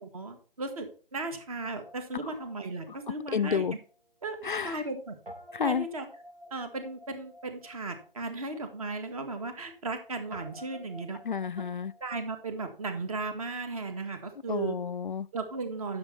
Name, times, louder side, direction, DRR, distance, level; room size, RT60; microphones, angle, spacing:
voice 1, 0.0-3.7 4.2-5.2 5.6-6.1 6.5-11.2 12.0-14.8 15.3-16.0, right 3 dB, 35° right, 1.7 m, -36 dB
Guitar, 1.6-4.0 4.3-4.4 5.3-13.1, equal, 75° right, 3.2 m, -51 dB
voice 2, 3.3-3.7 4.4-4.8 5.5-5.9 11.2-11.9 14.5-15.3, left 6 dB, 55° left, 0.5 m, -30 dB
10.5 x 6.5 x 4.4 m
figure-of-eight pair, 150°, 30 cm